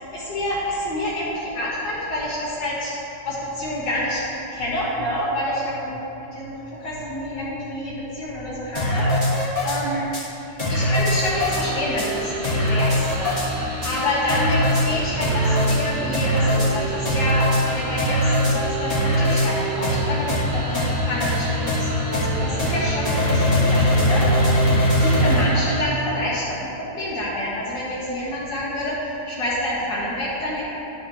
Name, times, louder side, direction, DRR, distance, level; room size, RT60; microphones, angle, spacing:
voice 1, 0.1-2.9 3.2-4.2 4.5-6.0 6.3-10.0 10.7-24.5 25.0-26.7 26.9-30.6, left 1 dB, 80° left, -9 dB, 2.0 m, -27 dB
sound 1, 8.7-9.8 10.1-10.2 10.6-11.6 12.0-12.1 12.4-13.5 13.8-13.9 14.3-14.8 15.2-15.8 16.1-16.7 17.0-17.6 18.0-18.5 18.9-19.5 19.8-20.0 20.3-20.4 20.7-20.9 21.2-21.3 21.7-21.8 22.1-22.3 22.6-22.7 23.0-25.4, equal, 20° left, 1.5 m, -20 dB
sound 2, 11.0-25.8, right 1 dB, 40° right, 1.2 m, -31 dB
11.5 x 7.2 x 3.0 m, 2.9 s
omnidirectional pair, 1.9 m